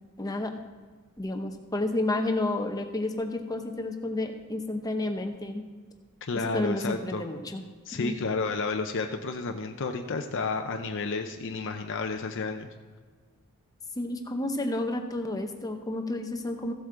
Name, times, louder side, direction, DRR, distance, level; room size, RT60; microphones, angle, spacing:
voice 1, 0.2-0.5 1.2-5.7 6.4-7.6 8.0-8.2 14.0-16.7, left 2 dB, 15° left, 5 dB, 0.7 m, -31 dB
voice 2, 6.3-7.2 7.9-12.7, left 4 dB, 55° left, 5 dB, 0.6 m, -31 dB
15.0 x 8.0 x 3.8 m, 1.5 s
head